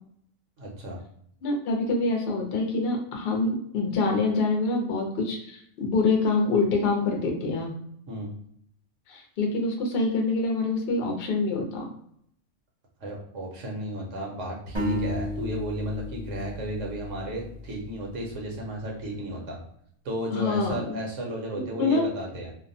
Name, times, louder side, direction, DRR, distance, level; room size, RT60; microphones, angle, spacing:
voice 1, 0.6-1.0 8.1-8.3 13.0-19.6 20.0-22.5, right 1 dB, 75° right, -1 dB, 1.0 m, -34 dB
voice 2, 1.4-7.7 9.1-11.9 20.3-21.0 21.6-22.1, left 3 dB, 60° left, 1 dB, 0.7 m, -26 dB
sound 1, 14.7-18.4, left 2 dB, 30° right, 0.6 m, -33 dB
2.5 x 2.1 x 2.6 m, 0.68 s
omnidirectional pair, 1.3 m